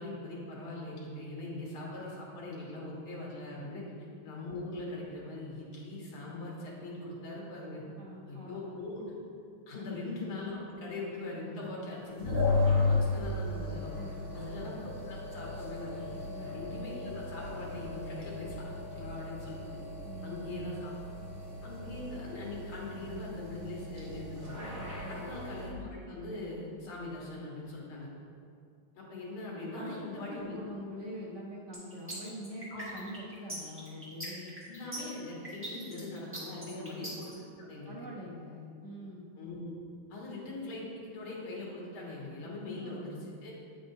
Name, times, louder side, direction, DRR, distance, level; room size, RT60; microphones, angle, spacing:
voice 1, 0.0-3.8 4.2-7.8 8.3-9.0 9.7-13.9 14.3-16.0 16.4-19.8 20.2-20.9 21.6-24.7 25.1-28.1 29.0-30.6 32.7-32.9 34.7-38.0 39.4-39.7 40.1-43.2 43.4-43.5, left 2 dB, 75° left, -4 dB, 2.3 m, -41 dB
voice 2, 8.0-8.8 9.8-9.9 13.9-14.6 16.3-16.5 20.0-20.3 21.8-22.0 25.0-25.4 29.7-34.6 36.6-37.0 37.8-39.3 42.6-43.2, equal, 70° right, -5 dB, 0.6 m, -45 dB
sound 1, 12.2-25.7, left 3 dB, 35° right, 1.4 m, -35 dB
sound 2, 31.7-37.3, right 1 dB, 5° right, 1.2 m, -41 dB
8.7 x 5.2 x 2.7 m, 2.4 s
omnidirectional pair, 2.4 m